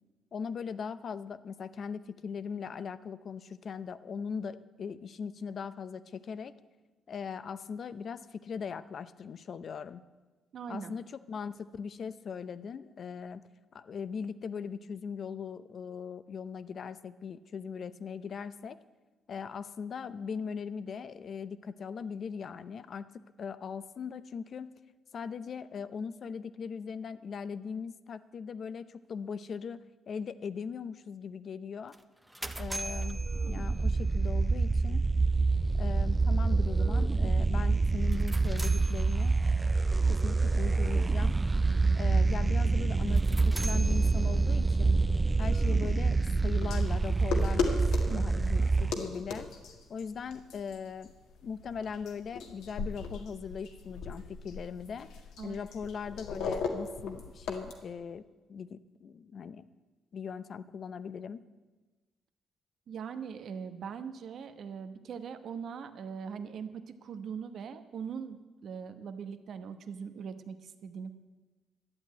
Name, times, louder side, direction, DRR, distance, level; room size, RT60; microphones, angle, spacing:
voice 1, 0.3-6.5 7.1-10.0 10.7-13.4 13.7-18.8 19.3-23.1 23.4-24.7 25.1-32.0 32.6-35.0 35.8-39.4 40.1-41.4 41.9-45.0 45.4-47.8 48.1-49.5 49.9-51.1 51.4-55.1 55.4-59.7 60.1-61.5, left 6 dB, 55° left, 14 dB, 0.6 m, -39 dB
voice 2, 10.5-10.9 48.1-48.3 48.6-48.7 55.4-55.6 62.9-71.1, right 6 dB, 65° right, 9 dB, 1.0 m, -41 dB
sound 1, 31.9-34.2 37.9-39.6 43.0-44.8, right 1 dB, 5° right, 0.8 m, -43 dB
sound 2, 32.4-48.9, right 3 dB, 25° right, 0.3 m, -27 dB
sound 3, 46.6-57.7, left 5 dB, 85° left, 1.8 m, -38 dB
11.5 x 8.1 x 9.3 m, 1.3 s
cardioid pair, 90°, 0 cm